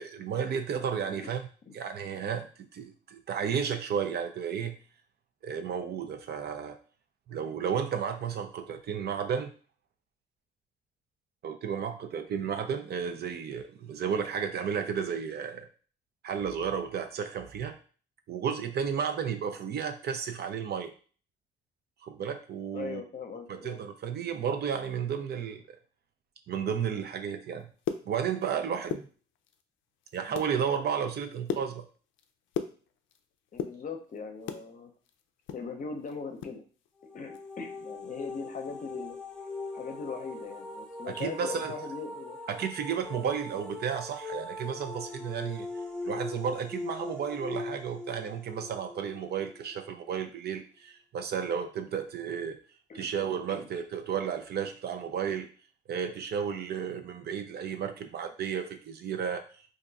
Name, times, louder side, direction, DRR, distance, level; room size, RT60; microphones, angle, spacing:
voice 1, 0.0-1.5 1.7-4.8 5.4-6.8 7.3-9.5 11.4-15.7 16.2-17.7 18.3-20.9 22.0-23.0 23.5-25.6 26.5-27.7 28.0-29.1 30.1-31.8 41.1-41.7 42.5-45.7 46.1-52.6 52.9-55.5 55.9-59.4, right 7 dB, 55° right, 6 dB, 0.5 m, -33 dB
voice 2, 1.0-1.3 1.7-1.8 22.7-23.8 33.5-34.9 35.5-36.6 37.1-39.5 39.7-42.4 43.2-43.4 52.9-53.1 53.5-53.7, left 5 dB, 40° left, 5 dB, 0.7 m, -40 dB
sound 1, 27.6-28.5 28.8-29.6 30.0-30.5 30.9-33.2 33.5-34.7 35.0-36.6 36.8-36.9 37.3-37.5 37.9-38.1, left 8 dB, 75° left, 0.4 m, -37 dB
sound 2, 37.0-49.9, left 2 dB, 5° left, 0.6 m, -41 dB
2.6 x 2.3 x 3.9 m, 0.40 s
cardioid pair, 90°, 20 cm